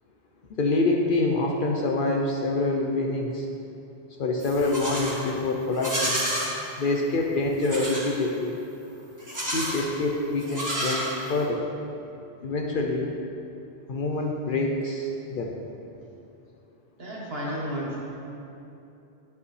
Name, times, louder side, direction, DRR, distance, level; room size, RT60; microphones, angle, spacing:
voice 1, 0.5-3.5 4.2-6.2 6.8-8.6 9.5-11.7 12.4-13.1 13.9-15.6, left 2 dB, 55° left, 1 dB, 0.7 m, -26 dB
Livestock farm animals working animals, 4.4-5.2 5.7-6.5 7.6-8.1 9.2-9.8 10.4-11.4, equal, 15° right, 1.6 m, -30 dB
voice 2, 17.0-18.0, equal, 60° right, -4 dB, 1.6 m, -32 dB
10.5 x 5.4 x 3.2 m, 2.8 s
omnidirectional pair, 1.1 m